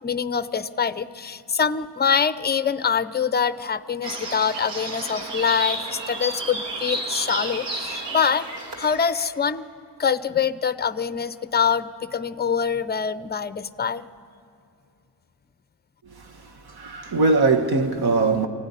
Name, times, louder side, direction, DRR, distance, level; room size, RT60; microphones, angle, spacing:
voice 1, 0.0-8.5 8.8-9.6 10.0-14.0, left 7 dB, 25° left, 0.5 m, -24 dB
sound 1, 4.0-9.3, right 2 dB, 85° right, 2.2 m, -31 dB
voice 2, 16.0-18.5, right 3 dB, 65° right, 1.6 m, -22 dB
25.0 x 16.0 x 9.9 m
wide cardioid pair, 170°, 41 cm